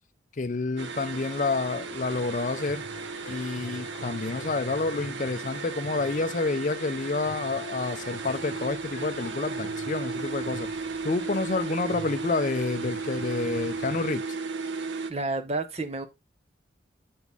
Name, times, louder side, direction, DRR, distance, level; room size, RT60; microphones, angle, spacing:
voice 1, 0.4-2.8 3.3-10.7 11.0-14.2, left 3 dB, 40° left, 0.5 m, -29 dB
sound 1, 0.8-15.1, right 4 dB, 80° right, 0.7 m, -35 dB
sound 2, 2.0-14.0, left 3 dB, 70° left, 0.9 m, -45 dB
voice 2, 15.1-16.1, right 2 dB, 35° right, 0.7 m, -30 dB
7.1 x 4.3 x 3.4 m
head